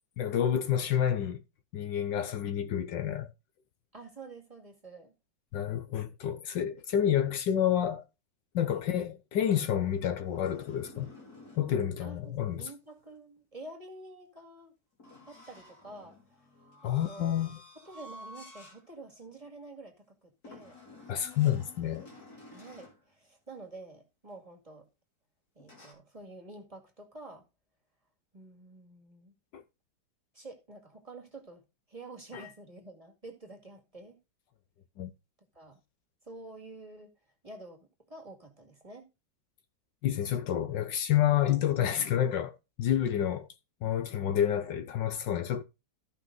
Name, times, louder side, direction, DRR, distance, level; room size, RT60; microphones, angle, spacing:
voice 1, 0.2-1.4 1.7-3.3 5.5-8.0 8.5-11.1 11.5-12.7 16.8-17.6 21.1-22.1 29.5-29.6 32.3-32.5 35.0-35.1 40.0-43.5 43.8-45.6, left 10 dB, 70° left, 1.4 m, -29 dB
voice 2, 3.9-5.1 8.7-8.9 12.0-14.7 15.3-16.2 16.8-17.3 17.8-20.8 22.5-24.9 25.6-27.4 28.3-29.3 30.3-31.6 31.9-34.2 35.5-35.8 36.2-37.1 37.4-39.1, right 2 dB, 20° right, 2.0 m, -48 dB
sound 1, 9.4-11.7 15.0-18.8 19.3-19.5 20.4-23.0 25.6-25.9, left 2 dB, 50° left, 3.4 m, -52 dB
14.0 x 5.6 x 3.9 m
omnidirectional pair, 2.1 m